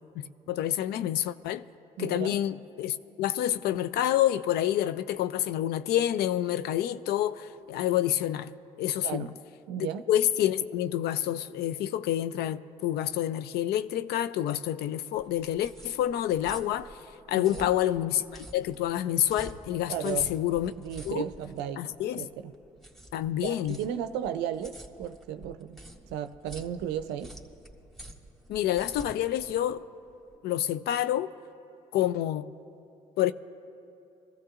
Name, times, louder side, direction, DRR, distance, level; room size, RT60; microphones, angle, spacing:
voice 1, 0.2-1.6 2.0-9.3 9.8-16.9 17.3-20.7 21.1-21.2 21.8-22.3 23.1-23.8 28.5-29.9 30.4-31.3 31.9-32.5 33.2-33.3, left 12 dB, 65° left, 0.4 m, -28 dB
voice 2, 2.0-2.3 9.0-9.4 9.7-10.0 17.4-17.7 19.9-20.3 20.8-21.8 22.2-22.5 23.4-25.8 26.1-27.4, right 9 dB, 75° right, 0.5 m, -34 dB
sound 1, 15.2-30.4, right 1 dB, ahead, 1.9 m, -48 dB
23.0 x 15.0 x 2.5 m
hypercardioid pair, 50°, 18 cm